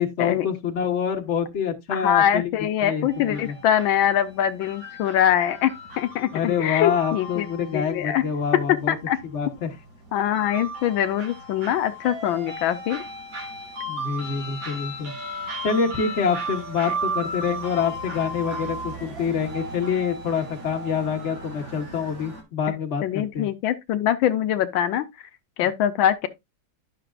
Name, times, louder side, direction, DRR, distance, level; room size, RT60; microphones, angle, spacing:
voice 1, 0.0-2.5 2.8-3.6 6.3-8.9 9.3-9.7 13.8-15.1 15.6-23.5, left 7 dB, 40° left, 1.5 m, -26 dB
voice 2, 1.9-7.5 7.7-8.2 8.5-9.2 10.1-13.0 16.8-16.9 23.0-25.1 25.6-26.3, left 10 dB, 85° left, 1.5 m, -23 dB
sound 1, 3.1-22.4, right 1 dB, 85° right, 3.4 m, -36 dB
10.5 x 6.8 x 2.4 m
omnidirectional pair, 2.1 m